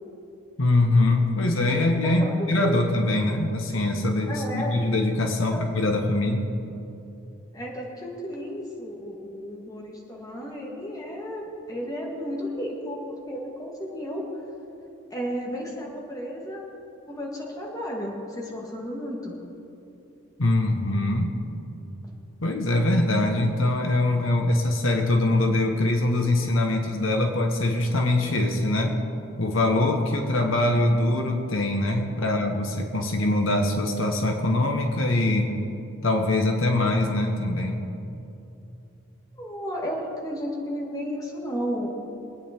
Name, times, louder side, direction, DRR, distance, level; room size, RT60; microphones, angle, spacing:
voice 1, 0.6-6.5 20.4-21.3 22.4-29.0 29.4-35.5 36.0-37.8, left 2 dB, 70° left, 3 dB, 1.3 m, -23 dB
voice 2, 2.0-2.8 4.3-4.7 5.5-5.9 7.5-14.2 15.1-16.6 17.1-19.4 39.3-41.9, equal, 15° left, -2 dB, 2.2 m, -33 dB
23.0 x 9.2 x 4.5 m, 2.8 s
head